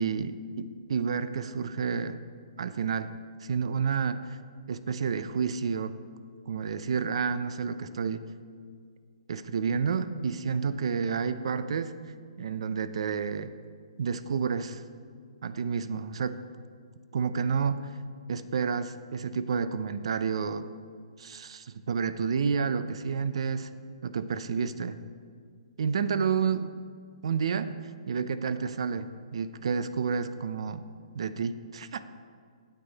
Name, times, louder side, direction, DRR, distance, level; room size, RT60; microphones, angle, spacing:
voice 1, 0.0-2.2 2.6-3.1 3.4-4.4 4.7-6.0 6.5-8.3 9.3-11.9 12.4-13.5 14.0-14.8 15.4-16.4 17.1-17.9 18.3-20.7 21.2-23.7 24.0-25.0 25.8-26.7 27.2-27.8 28.1-30.8 31.1-32.0, right 6 dB, 55° right, 13 dB, 0.4 m, -30 dB
9.0 x 8.9 x 4.0 m, 2.1 s
hypercardioid pair, 175°, 4 cm